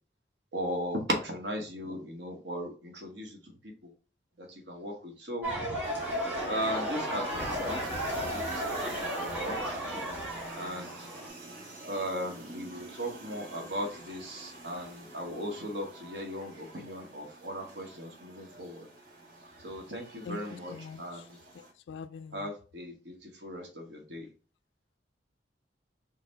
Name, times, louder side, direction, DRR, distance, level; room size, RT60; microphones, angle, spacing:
voice 1, 0.5-3.4 3.6-3.9 4.4-5.5 6.5-9.8 10.6-11.1 11.9-18.9 19.6-21.4 22.3-24.3, equal, 70° right, 1.0 m, -37 dB
sound 1, 5.4-11.3, equal, 10° right, 1.3 m, -34 dB
sound 2, 5.8-21.7, right 2 dB, 50° right, 1.2 m, -47 dB
voice 2, 20.2-21.3 21.5-22.5, left 5 dB, 80° left, 0.3 m, -44 dB
3.9 x 2.0 x 3.9 m
head